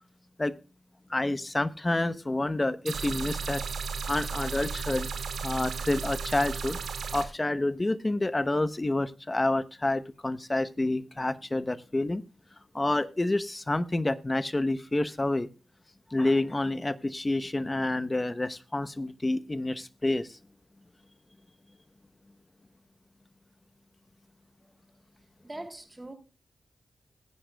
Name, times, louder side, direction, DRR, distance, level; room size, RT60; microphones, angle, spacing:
voice 1, 1.1-3.6 4.0-5.1 5.4-6.8 7.1-12.2 12.7-15.5 16.1-20.4, left 2 dB, 25° left, 1.0 m, -28 dB
sound 1, 2.9-7.2, right 5 dB, 85° right, 2.1 m, -34 dB
voice 2, 25.4-26.1, right 1 dB, 25° right, 3.1 m, -41 dB
19.0 x 10.0 x 2.3 m
cardioid pair, 45°, 0 cm